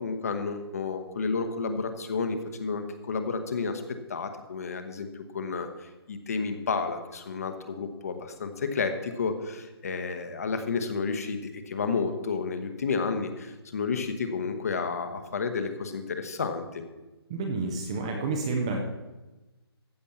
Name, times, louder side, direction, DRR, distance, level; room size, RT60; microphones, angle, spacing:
voice 1, 0.0-3.8 4.1-16.8, left 4 dB, 35° left, 7 dB, 1.1 m, -31 dB
voice 2, 17.3-18.8, right 3 dB, 10° right, 2 dB, 0.6 m, -29 dB
14.5 x 5.2 x 7.1 m, 1.1 s
hypercardioid pair, 175°, 14 cm